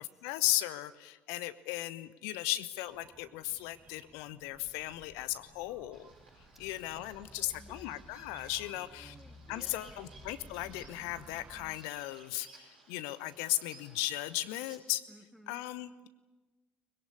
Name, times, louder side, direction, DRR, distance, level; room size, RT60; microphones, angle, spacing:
voice 1, 0.0-6.1 6.6-9.2 9.5-15.0 15.5-16.1, left 16 dB, 60° left, 14 dB, 1.0 m, -36 dB
sound 1, 2.8-11.8, right 1 dB, 40° right, 5.4 m, -55 dB
Bird vocalization bird call bird song, 5.9-14.8, right 3 dB, 80° right, 5.6 m, -60 dB
voice 2, 6.7-8.1 8.7-10.1 15.1-15.6, equal, 5° right, 4 dB, 2.9 m, -58 dB
23.5 x 21.0 x 9.8 m, 1.2 s
figure-of-eight pair, 55°, 5 cm